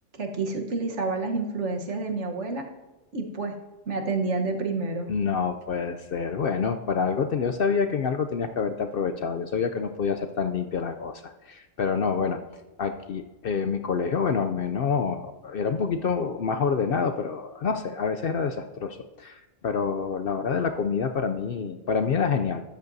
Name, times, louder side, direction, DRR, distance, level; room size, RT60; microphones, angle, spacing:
voice 1, 0.1-2.6 3.1-3.5 3.9-5.1, right 3 dB, 65° right, 3 dB, 1.5 m, -29 dB
voice 2, 5.1-12.4 12.8-22.6, left 5 dB, 60° left, 7 dB, 0.7 m, -27 dB
13.0 x 10.5 x 2.7 m, 1.1 s
omnidirectional pair, 1.3 m